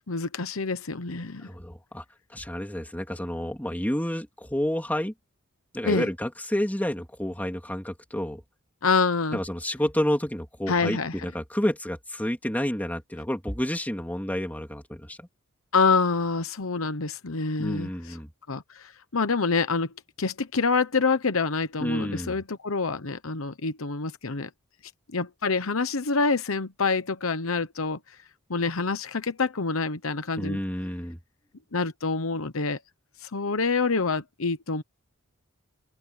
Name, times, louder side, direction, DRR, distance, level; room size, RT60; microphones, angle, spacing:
voice 1, 0.1-1.5 5.8-6.1 8.8-9.4 10.7-11.1 15.7-18.2 18.5-24.5 25.1-28.0 28.5-30.6 31.7-32.8 33.2-34.8, left 4 dB, 75° left, 1.1 m, -26 dB
voice 2, 1.4-2.0 2.3-5.1 5.7-8.4 9.3-15.3 17.6-18.3 21.8-22.4 30.4-31.2, equal, 10° left, 3.3 m, -30 dB
open air
head